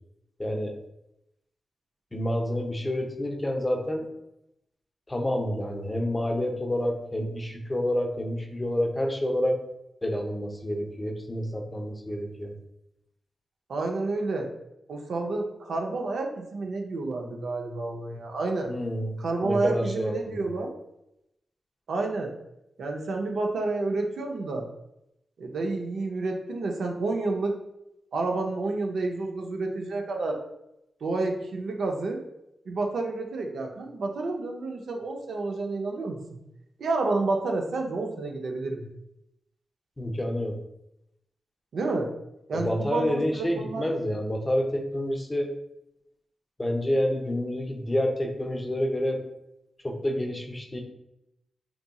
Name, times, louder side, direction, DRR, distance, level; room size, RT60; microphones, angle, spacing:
voice 1, 0.4-0.7 2.1-4.1 5.1-9.6 10.0-12.5 18.7-20.4 40.0-40.6 42.5-45.5 46.6-49.2 49.8-50.8, left 1 dB, 25° left, 2 dB, 0.5 m, -28 dB
voice 2, 13.7-14.5 14.9-18.7 19.2-20.7 21.9-22.3 22.8-24.7 25.4-27.6 28.1-30.4 31.0-32.2 32.7-36.4 36.8-38.9 41.7-42.1 42.5-43.8, right 3 dB, 80° right, 2 dB, 0.4 m, -29 dB
2.9 x 2.6 x 2.2 m, 0.85 s
cardioid pair, 45°, 0 cm